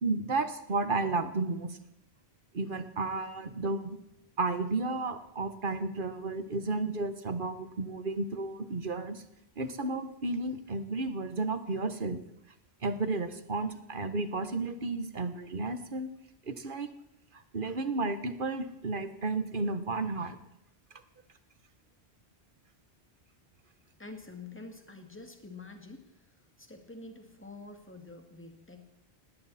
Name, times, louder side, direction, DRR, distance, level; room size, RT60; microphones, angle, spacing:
voice 1, 0.0-1.8 2.5-4.0 4.4-9.2 9.6-12.2 12.8-16.1 16.5-16.9 17.5-20.4, right 3 dB, 55° right, 10 dB, 1.4 m, -32 dB
voice 2, 24.0-26.0 26.6-28.8, left 3 dB, 10° left, 5 dB, 2.2 m, -47 dB
19.0 x 17.5 x 4.2 m, 0.81 s
omnidirectional pair, 1.1 m